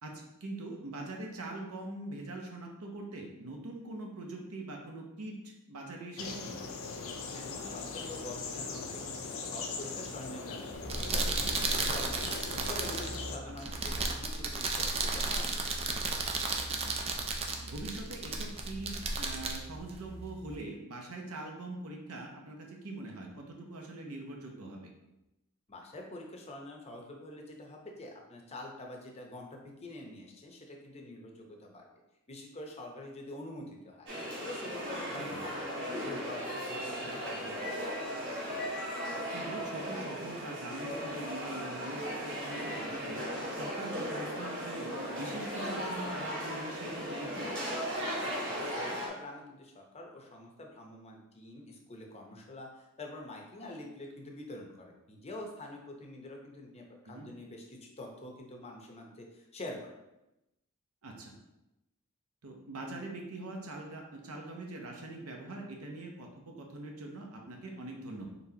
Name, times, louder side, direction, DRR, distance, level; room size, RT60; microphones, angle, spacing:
voice 1, 0.0-6.6 13.5-13.6 16.7-17.0 17.6-24.9 35.2-35.4 39.3-43.2 43.5-47.5 57.0-57.3 61.0-61.3 62.4-68.3, right 2 dB, 75° right, 1 dB, 0.7 m, -43 dB
sound 1, 6.2-13.4, left 4 dB, 65° left, 0.5 m, -40 dB
voice 2, 7.3-12.3 12.7-15.6 25.7-31.9 32.3-34.1 34.4-37.5 48.2-59.9, left 1 dB, 30° left, 1 dB, 0.7 m, -46 dB
sound 2, 10.7-20.6, right 3 dB, 25° right, 0.4 m, -34 dB
sound 3, 34.1-49.1, equal, 55° right, 1.2 m, -37 dB
4.1 x 3.3 x 2.7 m, 0.93 s
head